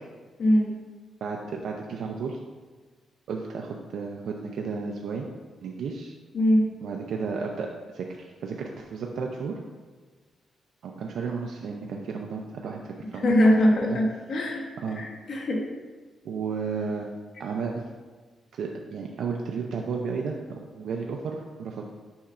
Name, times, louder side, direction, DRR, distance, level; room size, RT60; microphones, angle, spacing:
voice 1, 0.4-0.7 6.3-6.7 13.1-14.7 15.0-15.6, equal, 55° left, -1 dB, 1.2 m, -22 dB
voice 2, 1.2-2.4 3.3-5.3 5.6-6.1 6.8-7.7 7.9-9.6 10.8-13.4 13.9-14.0 14.8-15.0 16.2-17.1 17.4-17.9 18.6-20.4 20.7-21.8, right 5 dB, 70° right, 1 dB, 0.5 m, -33 dB
7.0 x 5.6 x 2.5 m, 1.4 s
wide cardioid pair, 160°, 0 cm